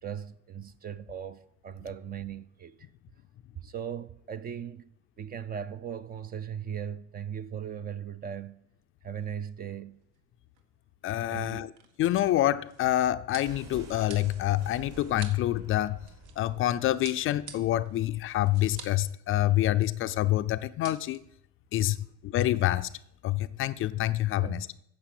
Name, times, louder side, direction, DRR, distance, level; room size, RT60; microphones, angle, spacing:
voice 1, 0.0-2.9 3.6-8.6 9.0-10.0 11.3-11.7 21.8-22.0 24.4-24.6, right 8 dB, 25° right, 0.4 m, -38 dB
sound 1, 10.0-10.3 10.6-10.7 11.5-16.6 17.0-19.1 19.4-19.5 19.7-20.2 20.6-21.2, right 7 dB, 70° right, 1.8 m, -49 dB
voice 2, 11.0-11.7 12.0-16.0 16.4-21.2 21.7-22.0 22.2-22.9 23.2-24.7, left 14 dB, 35° left, 0.4 m, -27 dB
sound 2, 13.4-17.2 17.5-17.6, right 4 dB, 45° right, 2.2 m, -49 dB
9.6 x 6.8 x 8.3 m
supercardioid pair, 120°, 36 cm